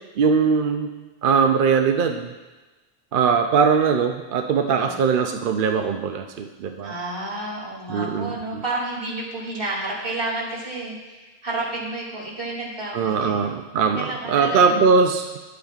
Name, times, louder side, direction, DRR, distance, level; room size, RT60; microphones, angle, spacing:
voice 1, 0.2-0.9 1.2-2.3 3.1-6.9 7.9-8.6 12.9-15.4, right 5 dB, 60° right, 5 dB, 0.7 m, -21 dB
voice 2, 4.8-5.2 6.8-13.4 13.9-14.8, right 2 dB, 85° right, -5 dB, 2.8 m, -31 dB
12.0 x 8.3 x 2.4 m, 1.2 s
omnidirectional pair, 1.1 m